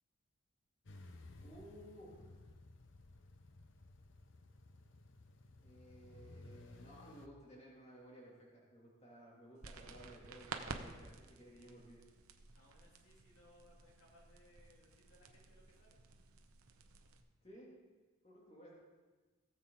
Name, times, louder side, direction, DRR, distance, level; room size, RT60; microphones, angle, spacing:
sound 1, 0.9-7.3, left 2 dB, 60° left, 0.8 m, -57 dB
voice 1, 1.4-2.3 5.6-12.0 17.4-17.7 18.2-18.7, equal, 30° left, -5 dB, 2.6 m, -57 dB
sound 2, 9.6-17.2, right 4 dB, 85° right, 0.9 m, -52 dB
voice 2, 12.5-16.0, left 1 dB, 75° left, -3 dB, 2.9 m, -66 dB
17.5 x 7.3 x 3.8 m, 1.3 s
head